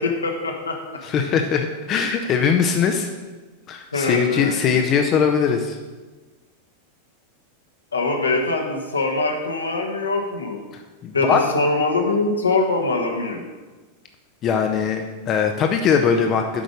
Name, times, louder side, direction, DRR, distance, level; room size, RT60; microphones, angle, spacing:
voice 1, 0.0-1.0 3.9-4.7 7.9-10.6 11.1-13.4, left 3 dB, 75° left, 1 dB, 1.3 m, -23 dB
voice 2, 1.0-3.1 3.7-5.8 11.0-11.4 14.4-16.6, left 6 dB, 30° left, 5 dB, 0.7 m, -21 dB
8.6 x 5.2 x 6.4 m, 1.3 s
figure-of-eight pair, 90°, 0 cm